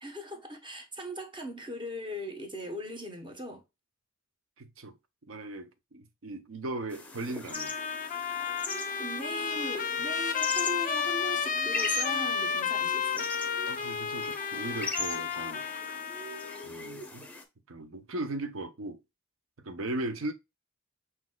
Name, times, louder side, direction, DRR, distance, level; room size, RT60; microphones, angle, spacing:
voice 1, 0.0-3.6 9.0-13.3, equal, 25° right, 1.0 m, -39 dB
voice 2, 4.6-5.0 5.3-7.7 13.6-15.6 16.6-17.3 17.7-19.0 19.6-20.3, right 2 dB, 80° right, 0.7 m, -37 dB
sound 1, 6.9-17.4, left 2 dB, 5° left, 0.7 m, -39 dB
Trumpet, 7.5-16.7, left 7 dB, 40° left, 0.4 m, -32 dB
6.1 x 2.8 x 2.2 m
head